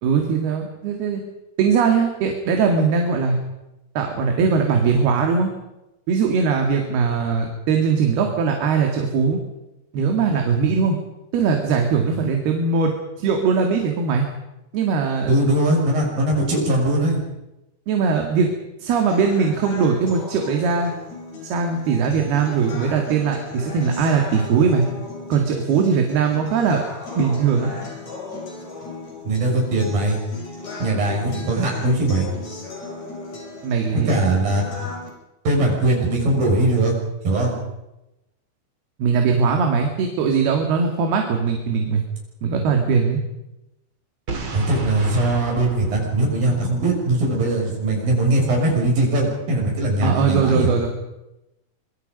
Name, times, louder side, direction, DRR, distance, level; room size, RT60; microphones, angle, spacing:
voice 1, 0.0-1.2 1.6-3.4 4.0-5.5 6.1-9.4 9.9-11.0 11.3-14.3 14.7-15.3 17.9-18.5 18.8-20.9 21.4-24.9 25.3-26.8 27.2-27.7 33.6-34.1 39.0-42.0 42.4-43.2 50.0-50.9, right 5 dB, 80° right, 3 dB, 4.1 m, -20 dB
voice 2, 15.3-17.2 29.2-30.2 30.8-32.3 34.1-34.6 35.4-36.9 37.2-37.5 44.5-50.7, right 2 dB, 65° right, -1 dB, 8.3 m, -20 dB
sound 1, 19.1-35.1, left 3 dB, 45° left, 7.1 m, -36 dB
Boom, 44.3-47.1, right 3 dB, 35° right, 3.5 m, -33 dB
25.5 x 23.5 x 5.4 m, 0.93 s
omnidirectional pair, 4.5 m